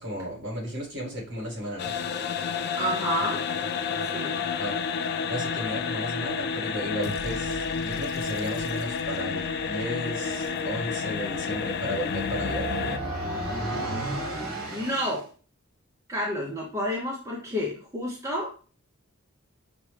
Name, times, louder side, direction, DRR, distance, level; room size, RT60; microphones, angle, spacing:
voice 1, 0.0-1.9 4.6-4.8 5.3-12.7, equal, 55° right, -3 dB, 1.9 m, -34 dB
sound 1, 1.8-13.0, left 6 dB, 50° left, 0.3 m, -30 dB
voice 2, 2.7-3.4 4.1-4.4 14.7-15.3 16.1-18.5, equal, 15° right, -3 dB, 0.7 m, -30 dB
sound 2, 7.0-11.1, left 1 dB, 80° left, 0.8 m, -43 dB
sound 3, 9.8-15.2, right 1 dB, 75° right, 1.4 m, -34 dB
5.9 x 2.2 x 3.2 m, 0.38 s
head